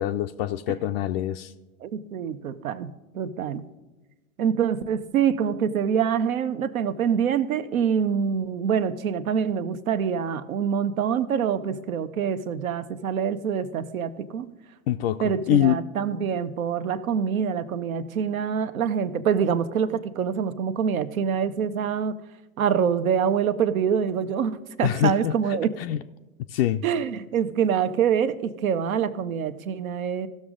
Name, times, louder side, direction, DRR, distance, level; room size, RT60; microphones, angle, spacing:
voice 1, 0.0-1.5 14.9-15.8 24.8-26.0 26.5-26.8, left 11 dB, 45° left, 7 dB, 0.4 m, -25 dB
voice 2, 1.8-3.7 4.4-14.5 15.2-22.1 22.6-25.7 26.8-30.3, right 7 dB, 70° right, 12 dB, 0.8 m, -25 dB
16.0 x 6.3 x 3.7 m, 1.1 s
hypercardioid pair, 100°, 43 cm